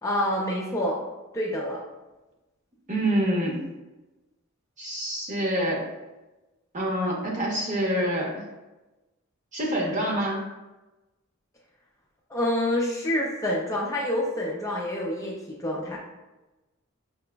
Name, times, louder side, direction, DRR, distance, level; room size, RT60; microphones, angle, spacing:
voice 1, 0.0-1.0 1.3-1.8 12.3-16.0, left 1 dB, 15° left, -3 dB, 0.5 m, -27 dB
voice 2, 2.9-3.7 4.8-5.9 6.7-8.4 9.5-10.5, right 1 dB, 35° right, -2 dB, 0.9 m, -26 dB
5.9 x 2.9 x 2.2 m, 1.1 s
head